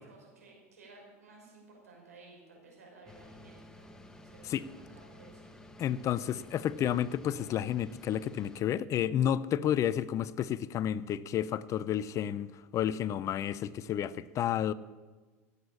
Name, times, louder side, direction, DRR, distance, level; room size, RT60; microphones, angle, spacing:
voice 1, 0.0-3.9 4.2-5.5, right 3 dB, 90° right, 5.7 m, -56 dB
sound 1, 3.1-8.6, left 1 dB, 10° left, 1.5 m, -52 dB
voice 2, 5.8-14.7, left 10 dB, 40° left, 0.6 m, -31 dB
17.0 x 8.2 x 7.1 m
hypercardioid pair, 90°, 8 cm